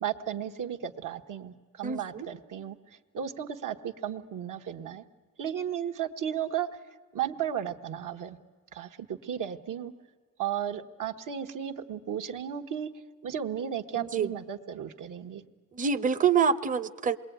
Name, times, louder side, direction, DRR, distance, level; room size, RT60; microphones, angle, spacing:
voice 1, 0.0-2.8 3.1-5.0 5.4-6.7 7.1-8.4 8.7-9.9 10.4-12.9 13.2-15.4, right 9 dB, 75° right, 5 dB, 1.3 m, -34 dB
voice 2, 1.8-2.3 14.0-14.3 15.8-17.2, right 6 dB, 25° right, 11 dB, 0.7 m, -26 dB
27.0 x 21.0 x 9.3 m, 1.5 s
cardioid pair, 105°, 32 cm